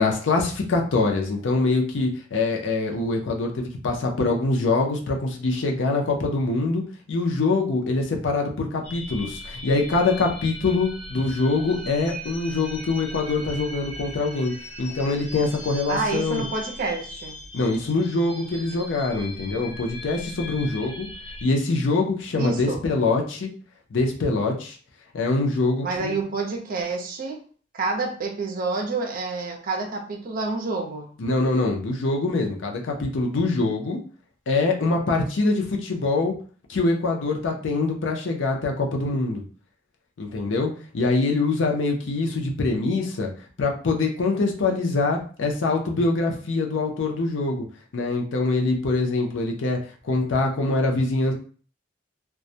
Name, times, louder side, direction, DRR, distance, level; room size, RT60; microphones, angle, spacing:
voice 1, 0.0-6.8 7.1-16.4 17.5-21.1 21.4-23.5 23.9-24.8 25.1-26.2 31.2-34.0 34.5-36.3 36.7-39.4 40.2-43.3 43.6-47.6 47.9-49.8 50.0-51.3, left 3 dB, 80° left, 1 dB, 0.5 m, -24 dB
sound 1, 8.8-21.4, left 1 dB, 35° left, 0.8 m, -39 dB
voice 2, 15.9-17.4 22.4-22.8 25.8-27.4 27.7-31.1, right 3 dB, 50° right, 2 dB, 0.5 m, -28 dB
2.2 x 2.0 x 2.7 m, 0.42 s
head